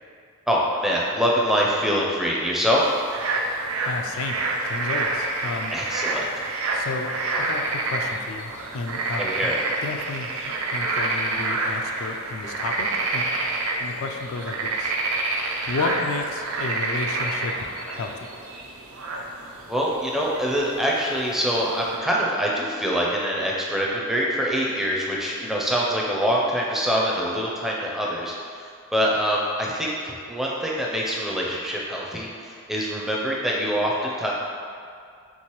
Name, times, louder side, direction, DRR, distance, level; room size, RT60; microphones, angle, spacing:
voice 1, 0.5-2.9 5.7-6.4 9.2-9.6 19.7-34.3, equal, ahead, -4 dB, 0.4 m, -24 dB
sound 1, 2.7-22.0, right 2 dB, 80° right, 0.5 m, -28 dB
voice 2, 3.8-5.7 6.7-9.5 9.8-13.3 13.8-15.0 15.7-18.3, left 3 dB, 70° left, 3 dB, 0.4 m, -32 dB
4.6 x 3.4 x 3.0 m, 2.3 s
head